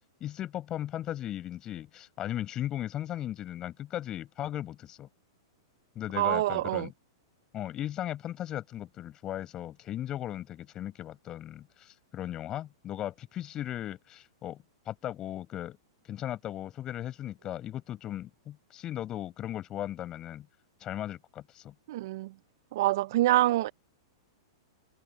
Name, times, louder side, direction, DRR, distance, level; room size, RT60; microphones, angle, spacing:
voice 1, 0.2-5.1 6.0-6.9 7.5-15.8 16.1-20.5 20.8-21.7, left 12 dB, 30° left, 7.2 m, -37 dB
voice 2, 6.2-6.9 21.9-22.3 22.7-23.7, right 16 dB, 60° right, 0.8 m, -26 dB
hypercardioid pair, 110°, 2 cm